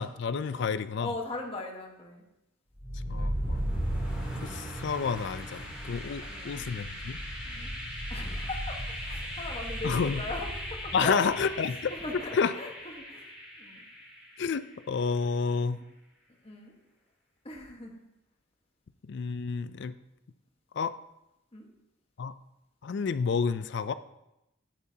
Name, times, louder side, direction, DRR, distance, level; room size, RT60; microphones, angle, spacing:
voice 1, 0.0-1.1 3.1-3.6 4.4-7.2 9.8-10.2 10.9-11.9 12.3-12.5 14.4-15.8 19.1-19.9 20.8-20.9 22.2-22.3 22.8-23.9, left 5 dB, 60° left, 13 dB, 0.4 m, -30 dB
voice 2, 1.0-2.2 6.2-6.7 7.4-7.7 8.1-11.5 11.9-13.3 13.6-13.8 16.4-16.7 17.4-18.0 21.5-21.7, left 2 dB, 30° left, 1 dB, 1.3 m, -39 dB
sound 1, 2.7-14.6, equal, 5° right, 2.8 m, -36 dB
10.5 x 9.5 x 2.8 m, 0.89 s
head